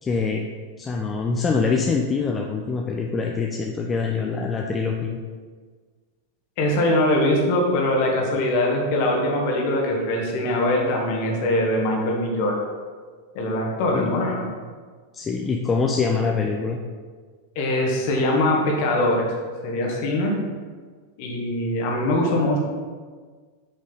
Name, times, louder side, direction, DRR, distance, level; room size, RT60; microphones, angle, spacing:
voice 1, 0.0-0.4 0.8-5.2 13.9-14.2 15.1-16.8, left 4 dB, 20° left, 1 dB, 0.5 m, -24 dB
voice 2, 6.6-12.7 13.3-14.4 17.5-19.4 19.6-20.4 21.2-22.6, left 1 dB, 45° left, -1 dB, 1.7 m, -22 dB
7.9 x 5.2 x 4.1 m, 1.5 s
figure-of-eight pair, 90°, 0 cm